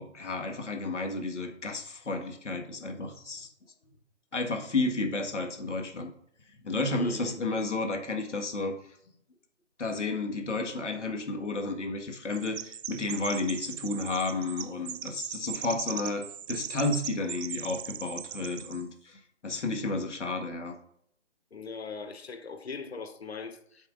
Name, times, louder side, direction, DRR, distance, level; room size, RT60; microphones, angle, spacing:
voice 1, 0.0-3.5 4.3-6.1 6.6-8.7 9.8-20.8, left 3 dB, 75° left, 1.9 m, -32 dB
voice 2, 6.9-7.4 21.5-23.9, left 4 dB, 60° left, 1.1 m, -40 dB
Chirp tweet, 12.3-18.8, right 9 dB, 80° right, 0.5 m, -39 dB
8.9 x 7.5 x 2.6 m
hypercardioid pair, 165°, 36 cm